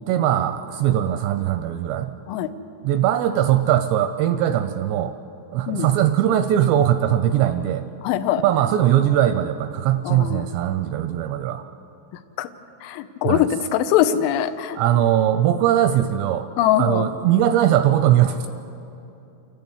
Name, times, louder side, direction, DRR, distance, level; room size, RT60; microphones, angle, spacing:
voice 1, 0.0-2.1 2.8-5.1 5.5-7.8 8.4-11.6 13.2-13.5 14.8-16.5 16.8-18.5, right 11 dB, 85° right, 9 dB, 2.5 m, -20 dB
voice 2, 8.0-8.4 10.0-10.4 12.4-12.5 12.8-14.8 16.6-17.1, left 11 dB, 90° left, 9 dB, 3.2 m, -22 dB
28.5 x 11.5 x 8.1 m, 2.9 s
omnidirectional pair, 5.4 m